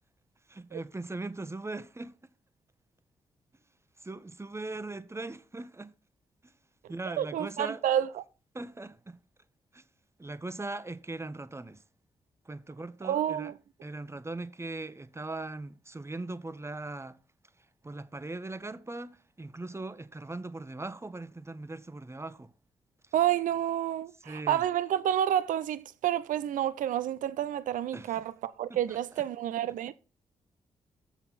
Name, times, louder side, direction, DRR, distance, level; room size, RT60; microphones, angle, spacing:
voice 1, 0.5-2.2 4.0-5.9 6.4-6.5 6.9-7.8 8.5-9.2 9.7-9.8 10.2-11.8 12.4-13.5 13.8-17.2 17.8-22.5 24.2-24.6 27.9-28.2 28.7-29.0, right 2 dB, 20° right, 1.0 m, -39 dB
voice 2, 7.1-8.2 13.0-13.5 23.1-29.9, right 11 dB, 75° right, 0.5 m, -29 dB
7.0 x 6.2 x 5.7 m
supercardioid pair, 40°, 14 cm